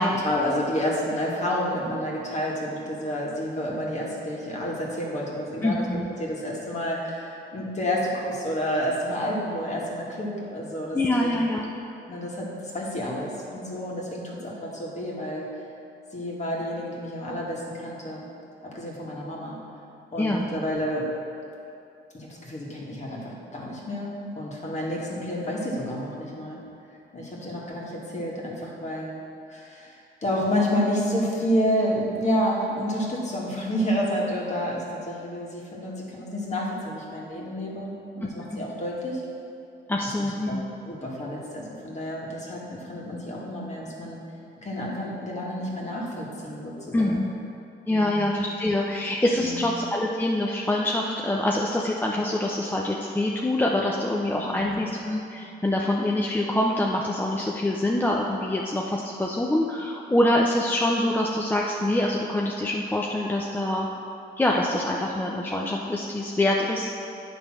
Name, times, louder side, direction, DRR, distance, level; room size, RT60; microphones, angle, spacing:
voice 1, 0.2-11.3 12.1-15.5 16.1-18.2 18.6-19.6 20.1-21.1 22.1-26.6 27.1-29.2 29.5-39.2 40.2-44.2 44.6-47.3 47.9-48.2 49.4-49.7 54.5-54.8, equal, 35° left, -4 dB, 1.8 m, -30 dB
voice 2, 5.6-6.1 10.9-11.6 20.2-20.5 38.5-38.6 39.9-40.6 46.9-47.3 47.9-63.9 64.4-66.9, left 1 dB, 10° left, -2 dB, 0.6 m, -25 dB
9.4 x 3.4 x 6.1 m, 2.7 s
cardioid pair, 90°, 20 cm